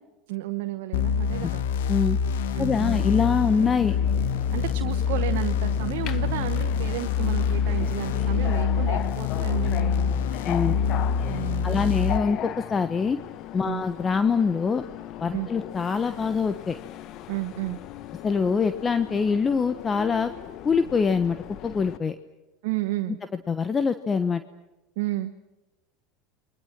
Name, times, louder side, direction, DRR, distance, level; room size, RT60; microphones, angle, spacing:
voice 1, 0.3-1.6 2.5-3.0 4.5-10.2 11.3-11.9 13.6-13.8 15.3-15.5 17.3-17.8 22.6-23.2 25.0-25.3, right 17 dB, 70° right, 7 dB, 1.0 m, -32 dB
sound 1, 0.9-12.2, left 7 dB, 75° left, 1.3 m, -25 dB
voice 2, 2.6-3.9 10.5-10.8 11.6-13.2 13.5-14.8 15.2-16.8 18.2-20.3 20.6-21.4 21.6-22.1 23.5-24.4, left 5 dB, 25° left, 10 dB, 1.1 m, -24 dB
Subway metro underground, 3.2-22.0, left 12 dB, 50° left, 1.1 m, -38 dB
30.0 x 23.0 x 6.1 m, 1.0 s
hypercardioid pair, 90°, 0 cm